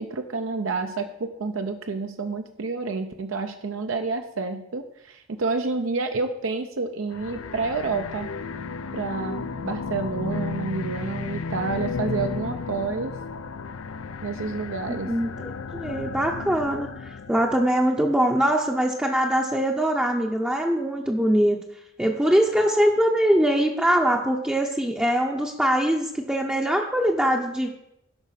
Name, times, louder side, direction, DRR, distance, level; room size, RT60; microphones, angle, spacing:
voice 1, 0.0-8.3 8.9-13.1 14.2-15.1, right 4 dB, 70° right, 6 dB, 0.7 m, -29 dB
sound 1, 7.1-17.7, left 4 dB, 90° left, 0.5 m, -33 dB
voice 2, 14.9-21.6 22.0-27.7, equal, 5° right, 0 dB, 0.7 m, -22 dB
12.5 x 5.4 x 5.7 m, 0.82 s
head